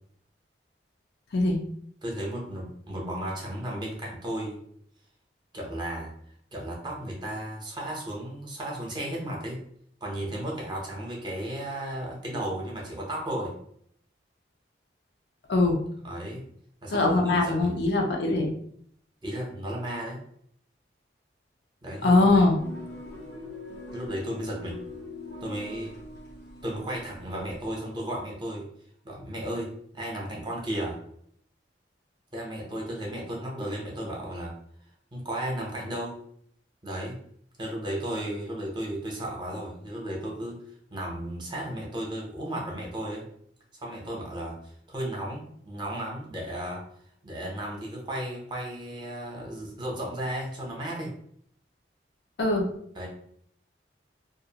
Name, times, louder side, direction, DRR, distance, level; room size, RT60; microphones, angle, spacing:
voice 1, 2.0-4.6 5.5-6.1 6.5-9.6 10.0-13.6 16.0-16.4 16.8-17.7 19.2-20.2 21.8-22.3 23.9-24.8 25.4-25.9 26.6-28.7 29.0-29.7 29.9-31.0 32.3-34.5 35.1-36.1 36.8-37.2 37.6-40.6 40.9-43.2 43.8-44.6 44.9-46.8 47.2-51.1 52.9-53.1, right 1 dB, 25° right, -3 dB, 0.7 m, -34 dB
voice 2, 15.5-15.8 16.9-18.5 22.0-22.6 52.4-52.7, left 2 dB, 65° left, 1 dB, 0.5 m, -22 dB
sound 1, 22.6-27.7, left 2 dB, 80° left, 1.0 m, -42 dB
2.4 x 2.1 x 2.8 m, 0.66 s
head